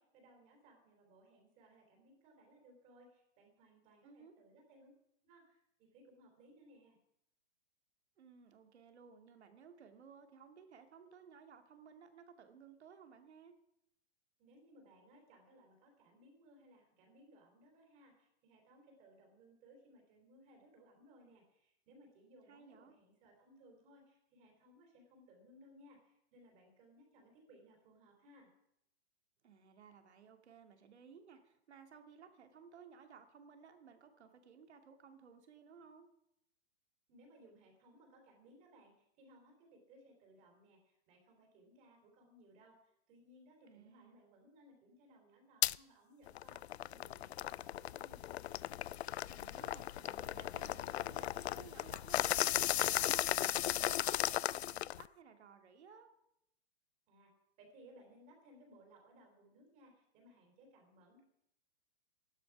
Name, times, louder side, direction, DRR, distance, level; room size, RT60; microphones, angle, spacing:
voice 1, 0.0-4.9 5.2-7.0 14.4-28.5 37.1-48.4 57.1-57.3 57.6-61.2, right 1 dB, 20° right, 2 dB, 3.8 m, -63 dB
voice 2, 4.0-4.4 8.2-13.6 22.5-22.9 29.4-36.1 43.6-44.2 49.3-56.1, right 6 dB, 80° right, 6 dB, 2.6 m, -58 dB
sound 1, 45.6-45.8 46.3-55.1, left 13 dB, 75° left, 0.5 m, -36 dB
13.5 x 12.0 x 6.1 m, 0.78 s
hypercardioid pair, 170°, 33 cm